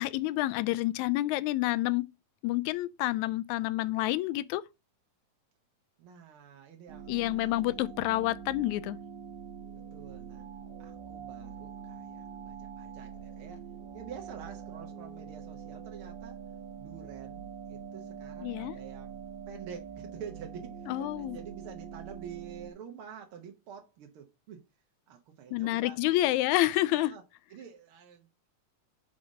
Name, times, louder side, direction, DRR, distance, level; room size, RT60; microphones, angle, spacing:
voice 1, 0.0-2.0 2.4-4.6 7.1-9.0 18.4-18.8 20.9-21.4 25.5-27.2, left 17 dB, 85° left, 1.9 m, -28 dB
voice 2, 6.0-7.6 8.0-8.1 9.9-10.4 10.8-13.6 13.9-16.4 16.8-24.6 25.1-26.3 27.0-27.2 27.5-28.5, right 7 dB, 65° right, 1.5 m, -48 dB
sound 1, 6.9-22.7, right 7 dB, 85° right, 2.8 m, -44 dB
5.7 x 5.0 x 5.1 m
omnidirectional pair, 3.3 m